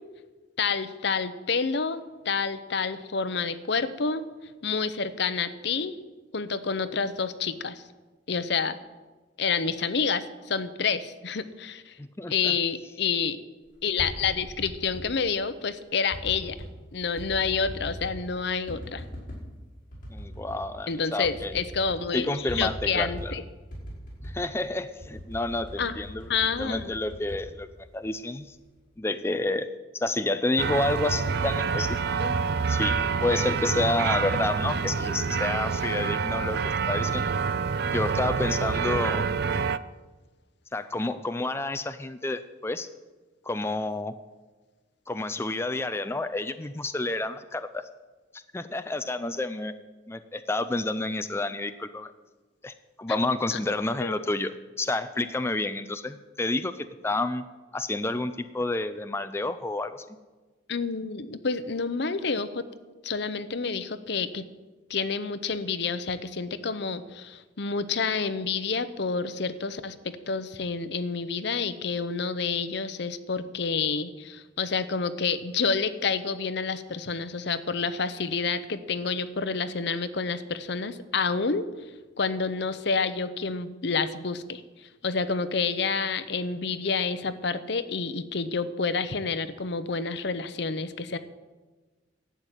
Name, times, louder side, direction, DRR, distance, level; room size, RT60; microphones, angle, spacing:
voice 1, 0.6-4.2 4.6-6.0 6.3-7.8 8.3-8.8 9.4-11.9 12.3-13.4 13.8-16.6 16.9-19.0 20.9-23.4 25.8-26.0 26.3-26.9 53.5-53.6 54.0-54.1 60.7-62.7 63.0-64.5 64.9-81.7 82.2-91.2, left 5 dB, 65° left, 12 dB, 0.8 m, -29 dB
voice 2, 12.0-12.6 20.1-21.6 22.1-23.3 24.2-26.3 26.6-27.7 27.9-28.6 29.0-29.7 29.9-32.3 32.7-36.6 36.9-37.3 37.8-39.3 40.7-42.9 43.5-44.1 45.1-47.9 48.3-49.7 50.1-52.1 52.6-54.5 54.8-57.4 57.7-60.1, left 2 dB, 15° left, 10 dB, 0.4 m, -29 dB
sound 1, 13.7-15.1 16.1-16.7 17.2-18.2 18.7-19.4 19.9-20.6 20.9-21.0 21.2-22.1 22.5-23.4 23.7-24.4 25.0-28.1 28.5-28.9, equal, 50° left, 5.6 m, -40 dB
sound 2, 30.6-39.8, right 5 dB, 60° right, 0.5 m, -27 dB
12.0 x 8.1 x 9.0 m, 1.3 s
head